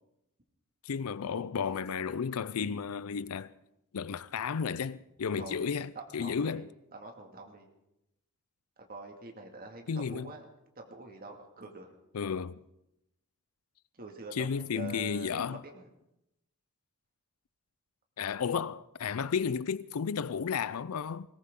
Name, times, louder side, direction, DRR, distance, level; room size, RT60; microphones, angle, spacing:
voice 1, 0.8-3.5 3.9-6.6 9.9-10.3 12.1-12.6 14.3-15.6 18.2-21.3, left 6 dB, 80° left, 0.5 m, -33 dB
voice 2, 5.4-5.7 6.0-6.6 6.9-7.7 8.9-10.4 10.8-11.9 14.0-15.9, right 2 dB, 45° right, 2.1 m, -45 dB
20.5 x 18.0 x 3.7 m
head